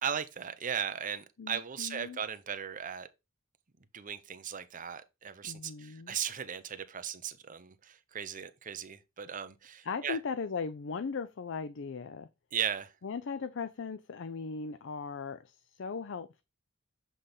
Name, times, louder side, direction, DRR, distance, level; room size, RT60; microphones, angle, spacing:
voice 1, 0.0-3.1 3.9-10.2 12.5-12.9, right 8 dB, 40° right, 0.7 m, -37 dB
voice 2, 1.4-2.2 5.4-6.2 9.8-12.3 13.0-16.4, left 5 dB, 60° left, 0.5 m, -38 dB
7.6 x 3.4 x 4.0 m
head